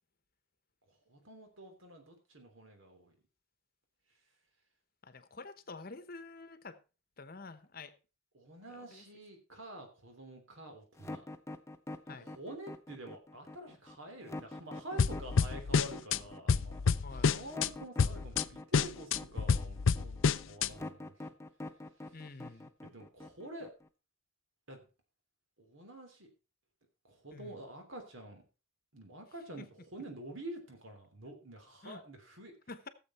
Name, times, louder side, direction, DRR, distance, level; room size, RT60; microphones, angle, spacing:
voice 1, 1.1-3.2 8.3-11.2 12.2-16.8 17.1-21.1 22.8-23.7 24.7-24.9 25.6-26.3 27.0-28.4 28.9-32.5, right 1 dB, 70° right, 3.2 m, -48 dB
voice 2, 5.0-6.8 7.2-7.9 8.7-9.1 12.1-12.3 17.0-17.4 20.7-20.8 22.1-22.7 27.3-27.6 29.6-29.7 31.8-32.0 32.7-32.9, left 3 dB, 45° left, 1.0 m, -48 dB
sound 1, 11.0-23.9, left 2 dB, 15° left, 0.7 m, -45 dB
sound 2, 15.0-16.2 16.5-17.7 18.0-18.4 18.7-20.7, left 5 dB, 70° left, 0.5 m, -28 dB
16.0 x 7.5 x 4.3 m
head